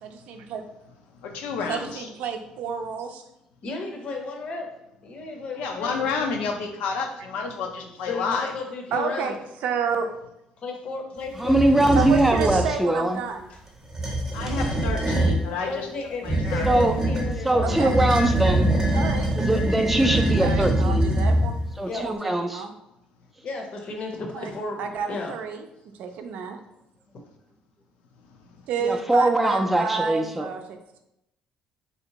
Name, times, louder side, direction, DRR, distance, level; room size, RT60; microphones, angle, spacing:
voice 1, 0.0-0.6 1.7-3.2 8.9-10.1 11.9-13.5 17.6-17.9 18.9-19.3 20.4-21.6 21.9-22.7 24.3-24.5 24.8-25.7 26.0-26.6 28.7-30.8, right 6 dB, 75° right, 6 dB, 0.4 m, -30 dB
voice 2, 1.2-2.1 5.5-8.5 14.3-15.9 16.2-16.8, left 4 dB, 90° left, 3 dB, 0.5 m, -30 dB
voice 3, 3.6-4.7 5.0-6.4 7.8-9.3 10.6-11.9 15.7-18.0 21.8-22.1 23.4-24.8 25.1-25.3, left 3 dB, 50° left, 2 dB, 0.7 m, -34 dB
voice 4, 11.4-13.2 16.7-17.0 17.4-18.7 19.4-21.1 21.8-22.7 28.8-30.5, right 1 dB, 5° right, 4 dB, 0.3 m, -22 dB
sound 1, 11.4-12.7 13.8-15.5 16.2-21.8, right 1 dB, 20° right, 0.7 m, -24 dB
3.4 x 2.8 x 2.9 m, 0.84 s
cardioid pair, 105°, 3 cm